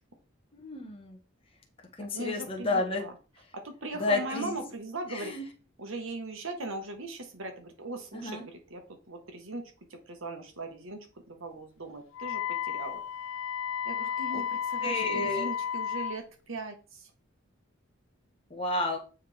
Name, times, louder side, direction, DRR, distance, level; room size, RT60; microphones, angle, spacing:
voice 1, 0.5-1.2 2.0-3.0 4.0-4.5 5.1-5.5 8.1-8.4 14.3-14.4 14.8-15.5 18.5-19.0, left 2 dB, 25° left, 1 dB, 1.1 m, -31 dB
voice 2, 2.1-3.1 3.5-5.4 5.8-13.0 13.8-17.1, right 2 dB, 75° right, 5 dB, 1.3 m, -39 dB
Wind instrument woodwind instrument, 12.1-16.2, left 8 dB, 70° left, 0.3 m, -33 dB
8.6 x 3.6 x 3.4 m, 0.35 s
head